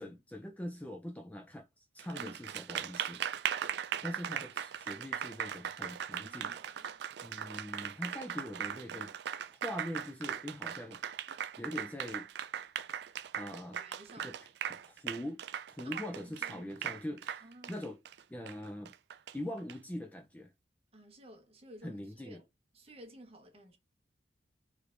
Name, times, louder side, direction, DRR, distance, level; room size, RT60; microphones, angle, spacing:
voice 1, 0.0-3.3 4.0-6.9 7.2-9.1 9.6-11.0 11.6-12.3 13.3-13.8 14.2-18.0 18.3-18.9 19.3-20.5 21.8-22.4, left 1 dB, 10° left, 0.4 m, -43 dB
Applause, 2.0-19.7, right 9 dB, 65° right, 0.3 m, -39 dB
voice 2, 6.1-6.9 13.8-14.3 15.8-16.7 17.4-17.8 20.9-22.4 22.7-23.8, right 1 dB, 35° right, 1.0 m, -54 dB
3.3 x 3.3 x 2.5 m
head